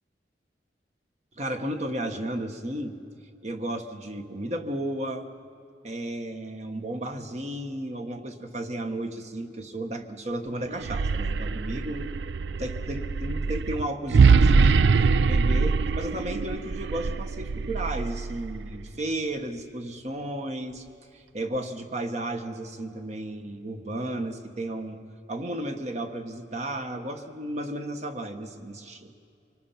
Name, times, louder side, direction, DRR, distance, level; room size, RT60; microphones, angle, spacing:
voice 1, 1.4-3.0 3.4-5.3 5.8-12.1 12.6-20.8 21.1-25.0 25.3-29.1, right 1 dB, 40° right, 6 dB, 1.3 m, -33 dB
sound 1, 10.7-18.8, right 4 dB, 80° right, 0.4 m, -23 dB
25.0 x 19.5 x 5.8 m, 2.5 s
head